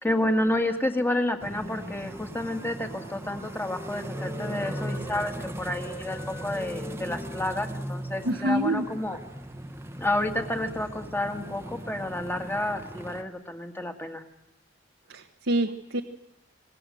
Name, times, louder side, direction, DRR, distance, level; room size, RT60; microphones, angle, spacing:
voice 1, 0.0-9.2 10.0-14.2, left 1 dB, 10° left, 6 dB, 2.1 m, -30 dB
sound 1, 1.4-13.2, right 1 dB, 15° right, 1.2 m, -38 dB
Wind instrument woodwind instrument, 2.0-5.3 5.6-9.4, left 1 dB, 25° left, 2.3 m, -46 dB
voice 2, 8.2-8.8 15.1-16.0, right 1 dB, 80° right, 3 dB, 1.4 m, -26 dB
27.0 x 20.0 x 7.9 m, 0.84 s
head